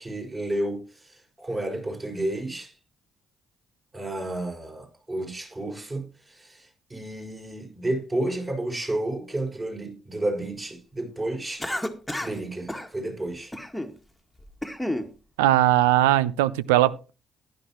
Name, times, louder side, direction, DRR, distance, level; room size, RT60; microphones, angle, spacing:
voice 1, 0.0-2.7 3.9-11.7 12.2-13.5, right 1 dB, 30° right, 6.2 m, -31 dB
Cough, 11.6-12.4 12.7-12.9 13.5-13.9 14.4-15.1, left 1 dB, 5° left, 1.9 m, -31 dB
voice 2, 15.4-17.1, right 14 dB, 75° right, 0.5 m, -20 dB
15.0 x 11.0 x 3.0 m
figure-of-eight pair, 45°, 0 cm